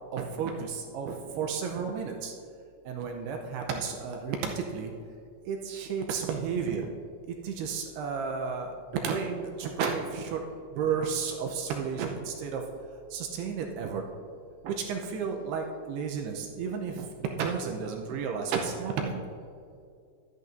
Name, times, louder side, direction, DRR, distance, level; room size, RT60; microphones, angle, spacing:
voice 1, 0.1-2.3 2.9-4.9 5.5-6.9 7.4-10.4 10.8-12.6 13.1-14.0 14.6-17.1 17.4-19.2, right 6 dB, 80° right, 2 dB, 2.5 m, -32 dB
12.0 x 11.0 x 2.6 m, 2.3 s
omnidirectional pair, 5.2 m